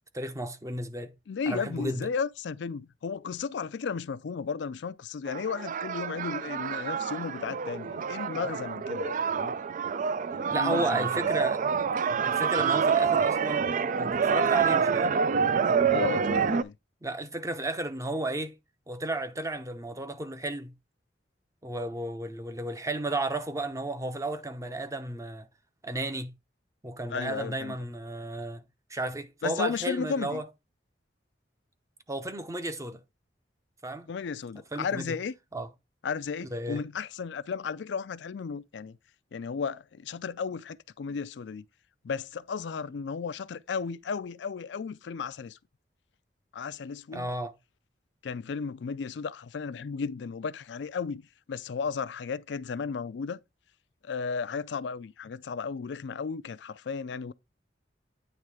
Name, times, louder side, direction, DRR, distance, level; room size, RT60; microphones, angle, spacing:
voice 1, 0.1-1.1 1.5-2.1 10.5-11.6 12.2-15.1 17.0-18.5 18.9-20.7 21.6-25.5 25.8-26.3 26.8-28.6 28.9-30.4 32.1-33.0 33.8-34.1 34.7-35.2 35.5-35.7 36.4-36.8 47.1-47.5, right 2 dB, 15° right, 0.7 m, -33 dB
voice 2, 1.3-9.5 10.3-11.3 15.9-16.7 27.1-27.8 29.4-30.4 34.1-35.3 36.0-39.0 39.3-41.6 42.0-45.6 46.5-47.3 48.2-51.2 51.5-53.4 54.0-57.3, left 5 dB, 70° left, 0.4 m, -34 dB
sound 1, 5.3-16.6, right 6 dB, 45° right, 0.4 m, -27 dB
9.1 x 3.2 x 4.7 m
head